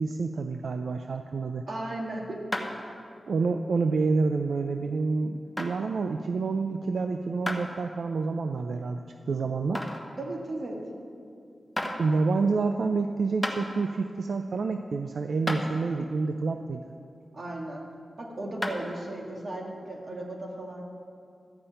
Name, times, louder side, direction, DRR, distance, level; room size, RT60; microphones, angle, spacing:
voice 1, 0.0-1.6 3.3-9.9 12.0-16.8, right 4 dB, 80° right, 6 dB, 0.4 m, -28 dB
voice 2, 1.7-2.4 10.2-10.8 17.3-17.8 18.2-20.8, right 1 dB, 55° right, -1 dB, 1.9 m, -35 dB
sound 1, 2.5-2.9 3.4-3.5 4.3-4.4 5.6-5.7 7.5-7.6 8.2-8.3 9.7-10.1 11.2-11.3 11.8-12.0 13.0-13.1 13.4-13.6 14.9-15.0 15.5-15.6 18.6-18.9, left 1 dB, 10° left, 1.1 m, -31 dB
13.0 x 5.6 x 8.9 m, 2.4 s
wide cardioid pair, 115°, 0 cm